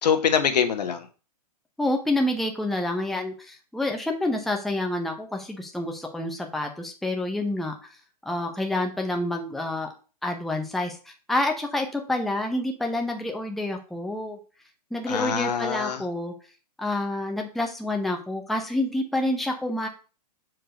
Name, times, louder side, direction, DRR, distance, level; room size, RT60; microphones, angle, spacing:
voice 1, 0.0-1.1 15.1-16.0, left 7 dB, 75° left, 7 dB, 1.4 m, -24 dB
voice 2, 1.8-8.0 8.2-9.9 10.2-14.4 14.9-16.3 16.8-19.9, left 1 dB, ahead, 2 dB, 0.8 m, -28 dB
6.1 x 4.7 x 5.1 m, 0.35 s
hypercardioid pair, 140°, 21 cm